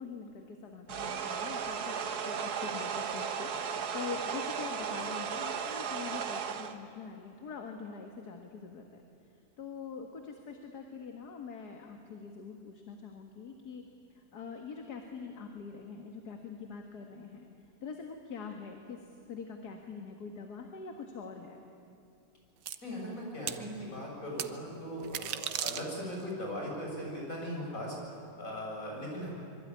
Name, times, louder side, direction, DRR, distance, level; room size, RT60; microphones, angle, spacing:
voice 1, 0.0-9.0 9.6-13.9 14.1-17.5 17.8-21.6, left 5 dB, 65° left, 4 dB, 2.3 m, -44 dB
sound 1, 0.9-6.7, right 7 dB, 65° right, 1.8 m, -35 dB
sound 2, 22.7-22.8 23.5-23.6 24.4-24.5 25.0-26.2, right 9 dB, 90° right, 1.6 m, -35 dB
voice 2, 22.8-27.9 28.4-29.3, equal, 50° left, -2 dB, 7.7 m, -39 dB
25.5 x 23.5 x 9.8 m, 2.7 s
omnidirectional pair, 1.8 m